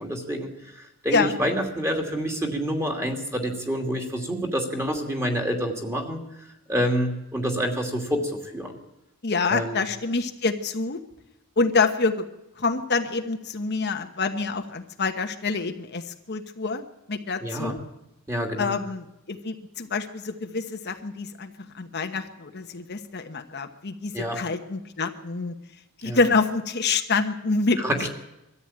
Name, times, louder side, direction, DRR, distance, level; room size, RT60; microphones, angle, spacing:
voice 1, 0.0-6.2 6.7-8.7 9.5-9.8 17.4-17.7 18.3-18.7 24.1-24.4 26.0-26.2 27.8-28.1, equal, 15° right, 1 dB, 2.6 m, -27 dB
voice 2, 9.2-11.0 11.6-12.3 12.6-16.8 17.1-17.8 18.6-25.5 26.0-28.1, left 4 dB, 50° left, 5 dB, 1.1 m, -26 dB
22.0 x 14.0 x 8.8 m, 0.93 s
head